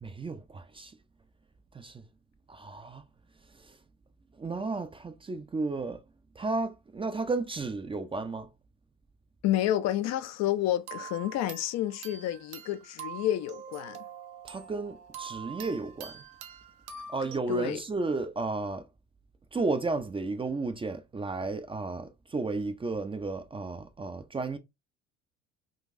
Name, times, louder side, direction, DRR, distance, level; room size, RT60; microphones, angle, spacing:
voice 1, 0.0-0.9 1.7-2.0 2.5-3.0 3.6-3.8 4.4-6.0 6.4-8.5 14.4-16.2 17.1-18.9 19.5-24.6, right 3 dB, 15° right, 0.4 m, -33 dB
voice 2, 9.4-14.0 17.5-17.8, left 12 dB, 50° left, 0.4 m, -29 dB
sound 1, 10.9-17.4, right 7 dB, 70° right, 0.8 m, -45 dB
3.9 x 2.3 x 2.5 m
hypercardioid pair, 70°, 36 cm